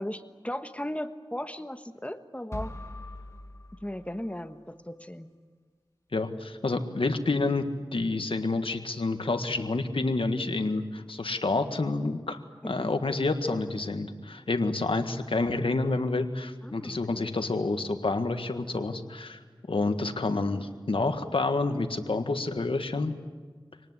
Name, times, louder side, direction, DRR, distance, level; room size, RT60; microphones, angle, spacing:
voice 1, 0.0-2.7 3.8-5.3 12.6-12.9 16.6-17.3, left 1 dB, 15° left, 9 dB, 1.4 m, -37 dB
sound 1, 2.5-4.5, left 1 dB, 30° left, 2.1 m, -42 dB
voice 2, 6.1-7.7 7.9-12.4 12.6-19.4 19.7-23.1, left 3 dB, 85° left, 7 dB, 1.7 m, -28 dB
26.0 x 19.0 x 9.7 m, 1.5 s
wide cardioid pair, 45°, 9 cm